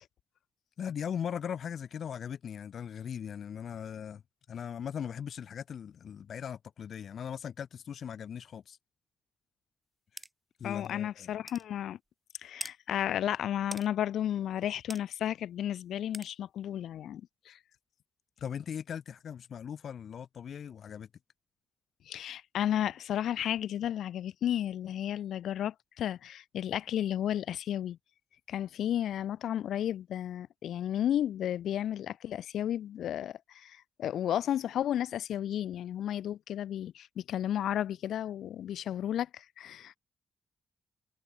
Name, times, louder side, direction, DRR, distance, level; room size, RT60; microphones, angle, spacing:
voice 1, 0.8-4.2 4.5-8.8 10.6-11.3 18.4-21.1, left 8 dB, 65° left, 1.9 m, -39 dB
sound 1, 10.2-10.3 10.8-10.9 11.5-11.6 12.6-12.8 13.7-13.9 14.9-15.0 16.1-16.3, right 1 dB, 5° right, 1.1 m, -41 dB
voice 2, 10.6-12.0 12.4-17.6 22.1-28.0 28.5-40.0, left 11 dB, 90° left, 1.7 m, -33 dB
cardioid pair, 105°, 0 cm